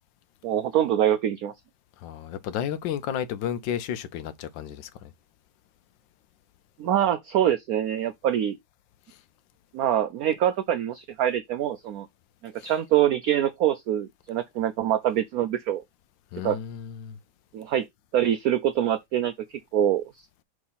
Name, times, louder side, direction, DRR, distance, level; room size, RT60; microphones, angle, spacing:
voice 1, 0.4-1.5 6.8-8.6 9.7-12.1 12.4-15.8 16.4-16.6 17.5-17.8 18.1-20.3, right 11 dB, 80° right, 0.8 m, -25 dB
voice 2, 2.0-5.1 12.6-12.7 16.3-17.2, left 9 dB, 75° left, 1.4 m, -32 dB
6.3 x 3.5 x 5.5 m
omnidirectional pair, 2.1 m